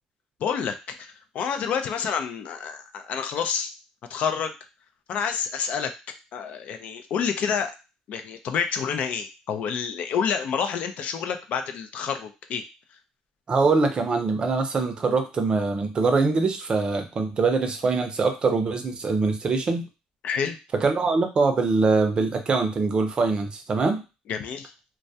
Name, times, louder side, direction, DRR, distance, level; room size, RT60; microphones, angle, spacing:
voice 1, 0.4-3.7 4.1-4.5 5.1-5.9 6.3-7.7 8.1-12.6 20.2-20.6 24.3-24.7, left 7 dB, 60° left, 7 dB, 0.4 m, -28 dB
voice 2, 13.5-19.8 20.8-24.0, right 4 dB, 35° right, 6 dB, 0.5 m, -23 dB
2.2 x 2.1 x 2.7 m, 0.29 s
cardioid pair, 90°, 3 cm